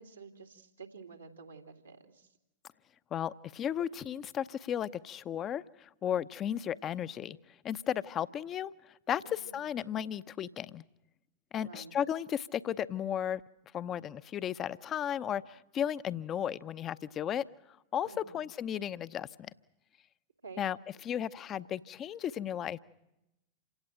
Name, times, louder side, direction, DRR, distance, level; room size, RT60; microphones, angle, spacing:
voice 1, 0.0-2.4 9.2-9.6 11.6-11.9 18.0-18.4 20.4-20.6, right 5 dB, 80° right, 0 dB, 2.6 m, -50 dB
voice 2, 3.1-7.4 7.6-10.8 11.5-13.4 13.7-17.4 17.9-19.5 20.6-20.8 21.0-22.8, left 9 dB, 30° left, 14 dB, 0.8 m, -34 dB
28.0 x 17.0 x 8.8 m, 0.91 s
figure-of-eight pair, 90°, 0 cm